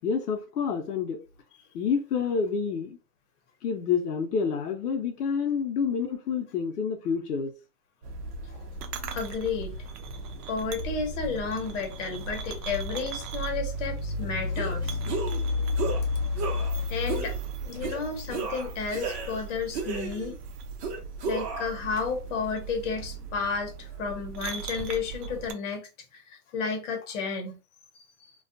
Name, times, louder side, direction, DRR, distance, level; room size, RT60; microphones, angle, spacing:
voice 1, 0.0-1.2 1.7-3.0 3.6-7.5, left 6 dB, 85° left, 0.7 m, -28 dB
sound 1, 8.0-25.5, left 1 dB, 85° right, 0.6 m, -34 dB
voice 2, 9.1-9.8 10.5-15.0 16.9-17.3 17.6-20.3 21.2-27.6 28.2-28.3, left 5 dB, 50° left, 0.9 m, -32 dB
sound 2, 14.5-14.7 15.1-15.4 15.8-16.0 16.4-16.7 17.1-17.4 17.8-18.0 18.3-19.4 19.7-20.4 20.8-21.8, right 4 dB, 45° right, 0.9 m, -33 dB
2.3 x 2.2 x 2.5 m
hypercardioid pair, 130°, 46 cm